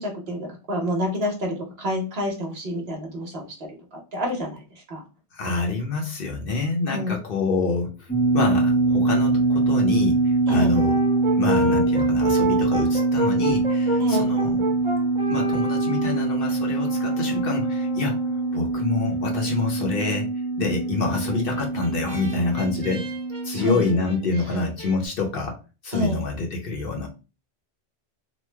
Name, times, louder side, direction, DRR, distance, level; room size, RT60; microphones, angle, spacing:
voice 1, 0.0-5.0 6.9-7.2 10.5-10.7 14.0-14.3 23.5-23.8 25.9-26.2, left 1 dB, 60° right, 1 dB, 1.1 m, -28 dB
voice 2, 5.3-10.2 10.5-10.9 11.4-14.8 15.3-18.2 18.5-20.3 20.6-23.1 23.4-25.6 25.8-27.1, left 3 dB, 55° left, 1 dB, 0.9 m, -27 dB
sound 1, 8.1-23.9, right 3 dB, 15° left, 0.5 m, -23 dB
Brass instrument, 10.5-18.8 21.3-25.0, right 1 dB, 30° right, 0.7 m, -31 dB
3.1 x 2.0 x 3.2 m, 0.31 s
omnidirectional pair, 1.2 m